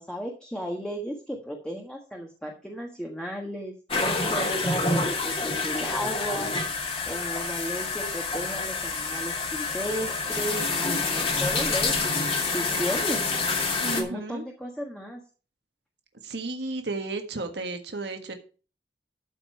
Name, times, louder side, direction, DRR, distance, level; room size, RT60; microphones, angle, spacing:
voice 1, 0.0-3.7 4.2-6.5 7.1-13.2 13.6-15.2, equal, 5° left, 0 dB, 1.4 m, -34 dB
sound 1, 3.9-14.0, left 3 dB, 30° left, 2.2 m, -27 dB
voice 2, 13.8-14.4 16.2-18.3, right 3 dB, 70° right, 5 dB, 1.5 m, -33 dB
13.0 x 5.4 x 5.8 m, 0.37 s
head